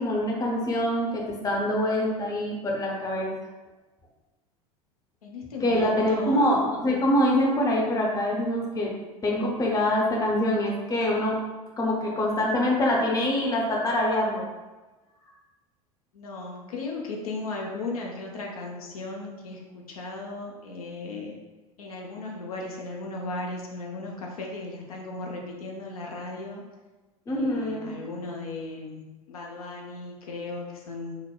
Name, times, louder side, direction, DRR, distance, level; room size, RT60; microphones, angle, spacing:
voice 1, 0.0-3.3 5.6-8.9 9.2-11.4 11.8-14.5 27.3-27.9, left 1 dB, 20° left, -1 dB, 0.7 m, -25 dB
voice 2, 5.2-6.5 16.1-21.4 21.8-26.6 27.3-31.2, left 3 dB, 75° left, -1 dB, 0.6 m, -36 dB
4.8 x 2.1 x 2.2 m, 1.2 s
figure-of-eight pair, 75°, 19 cm